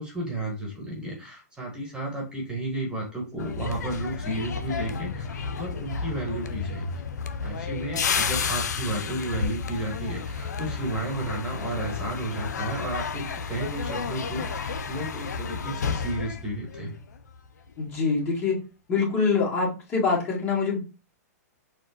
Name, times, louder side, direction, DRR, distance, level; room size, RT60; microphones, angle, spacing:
voice 1, 0.0-7.0 7.4-16.9, right 1 dB, 10° right, -1 dB, 1.4 m, -33 dB
sound 1, 3.4-17.4 17.7-18.0, left 5 dB, 85° left, 0.4 m, -31 dB
voice 2, 17.8-18.6 18.9-20.8, left 4 dB, 30° left, -4 dB, 1.7 m, -24 dB
4.3 x 2.3 x 4.3 m, 0.32 s
hypercardioid pair, 130°, 9 cm